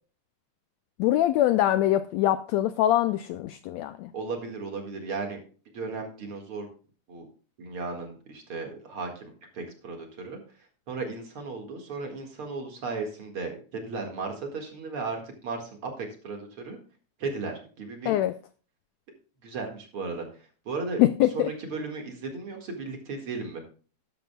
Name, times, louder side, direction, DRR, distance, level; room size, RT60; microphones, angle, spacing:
voice 1, 1.0-4.1 18.1-18.3 21.0-21.5, left 13 dB, 90° left, 1.5 m, -23 dB
voice 2, 4.1-5.4 5.7-6.7 7.1-7.3 7.6-10.6 10.9-16.8 17.2-18.2 19.4-21.0 21.3-23.6, right 4 dB, 45° right, 2.4 m, -35 dB
13.0 x 10.5 x 2.3 m
omnidirectional pair, 3.7 m